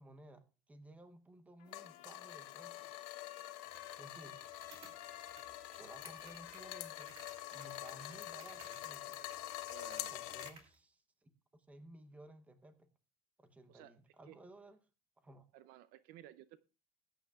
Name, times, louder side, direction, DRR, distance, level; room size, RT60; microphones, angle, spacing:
voice 1, 0.0-2.9 4.0-4.4 5.8-7.2 7.5-9.2 10.1-11.3 11.7-12.9 13.4-14.8 15.2-15.5, right 1 dB, 5° right, 8 dB, 0.8 m, -57 dB
Trumpet, 1.6-9.2, left 9 dB, 65° left, 2.9 m, -59 dB
sound 1, 1.7-10.5, left 16 dB, 80° left, 0.8 m, -46 dB
sound 2, 3.6-10.7, right 3 dB, 30° right, 2.6 m, -60 dB
voice 2, 9.7-10.1 13.7-14.0 14.3-14.4 15.5-16.6, right 13 dB, 50° right, 15 dB, 0.5 m, -56 dB
19.5 x 9.0 x 2.3 m, 0.34 s
cardioid pair, 180°, 20 cm